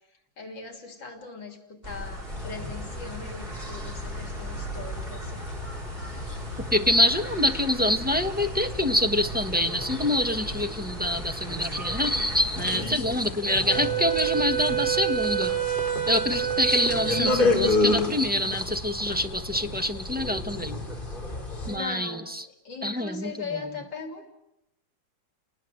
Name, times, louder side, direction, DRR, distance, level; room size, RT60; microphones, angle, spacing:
voice 1, 0.4-5.5 21.7-24.3, left 4 dB, 75° left, 5 dB, 3.6 m, -39 dB
sound 1, 1.8-12.7, equal, 30° right, 3.4 m, -38 dB
sound 2, 2.3-21.8, left 2 dB, 25° left, 4.3 m, -32 dB
voice 2, 6.7-15.6 16.1-20.8 21.7-22.4 22.8-23.3, left 1 dB, 5° right, 5 dB, 1.0 m, -25 dB
Wind instrument woodwind instrument, 13.7-18.0, right 11 dB, 75° right, 2.1 m, -28 dB
30.0 x 20.0 x 7.8 m, 0.88 s
omnidirectional pair, 2.0 m